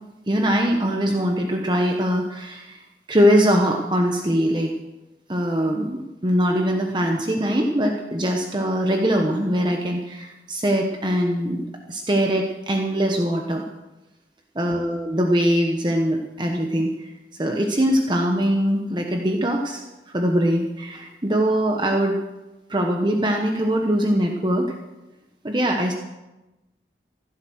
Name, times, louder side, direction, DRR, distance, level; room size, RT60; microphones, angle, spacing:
voice 1, 0.3-2.8 3.1-4.7 5.3-11.6 11.9-13.6 14.6-22.2 22.7-24.7 25.4-25.9, equal, 25° right, 2 dB, 1.1 m, -22 dB
15.5 x 11.5 x 6.4 m, 1.1 s
head